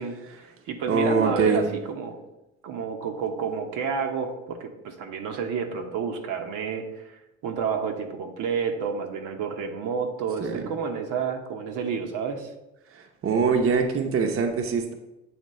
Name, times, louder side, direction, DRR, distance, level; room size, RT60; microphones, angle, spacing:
voice 1, 0.0-2.2 2.6-12.5, right 6 dB, 70° right, 4 dB, 0.9 m, -30 dB
voice 2, 0.9-1.6 10.4-10.7 12.9-14.9, right 5 dB, 45° right, 4 dB, 0.8 m, -23 dB
7.9 x 2.9 x 4.2 m, 0.95 s
cardioid pair, 95°, 32 cm